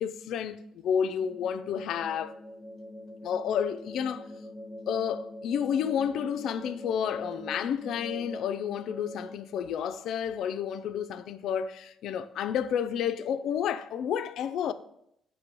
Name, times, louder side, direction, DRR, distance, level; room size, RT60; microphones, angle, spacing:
voice 1, 0.0-2.3 3.2-4.3 4.9-14.7, left 8 dB, 75° left, 0.3 m, -30 dB
sound 1, 1.2-9.3, equal, 25° left, 0.6 m, -43 dB
6.0 x 3.1 x 5.2 m
cardioid pair, 90°, 0 cm